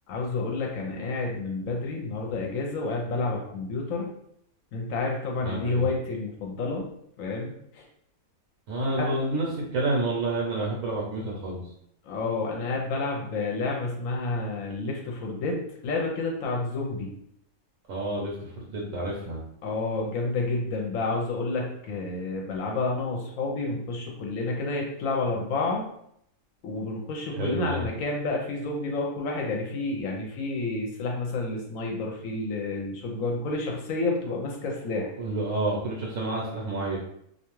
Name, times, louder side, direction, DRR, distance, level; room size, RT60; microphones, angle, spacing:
voice 1, 0.1-4.1 4.7-6.9 7.2-7.8 9.0-9.1 12.1-17.1 19.6-25.8 26.6-35.1, left 3 dB, 70° left, 0 dB, 0.9 m, -30 dB
voice 2, 5.4-5.9 8.7-11.6 17.9-19.4 27.4-27.8 35.2-37.0, right 2 dB, 70° right, -2 dB, 1.0 m, -29 dB
2.5 x 2.2 x 3.0 m, 0.72 s
omnidirectional pair, 1.5 m